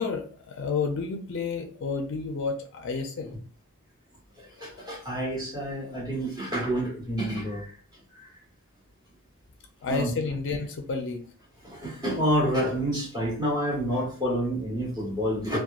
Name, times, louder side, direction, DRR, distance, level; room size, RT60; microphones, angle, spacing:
voice 1, 0.0-3.3 9.8-11.3, left 4 dB, 55° left, 4 dB, 0.4 m, -30 dB
voice 2, 4.4-7.7 8.1-8.3 9.8-10.1 11.6-15.6, equal, 20° right, -6 dB, 1.4 m, -28 dB
2.9 x 2.2 x 2.3 m, 0.42 s
head